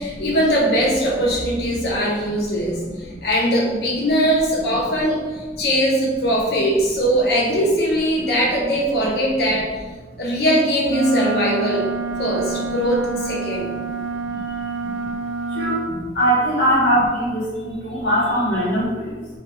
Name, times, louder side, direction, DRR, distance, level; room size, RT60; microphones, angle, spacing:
voice 1, 0.0-9.9 10.2-11.8 12.2-13.7 15.9-16.1, equal, 60° left, -3 dB, 0.5 m, -21 dB
voice 2, 2.8-3.2 13.8-14.0 14.3-14.4 14.8-15.2 15.5-19.2, equal, 75° left, -8 dB, 1.0 m, -22 dB
Wind instrument woodwind instrument, 10.9-15.8, right 4 dB, 90° right, 0.3 m, -27 dB
2.2 x 2.2 x 2.8 m, 1.3 s
head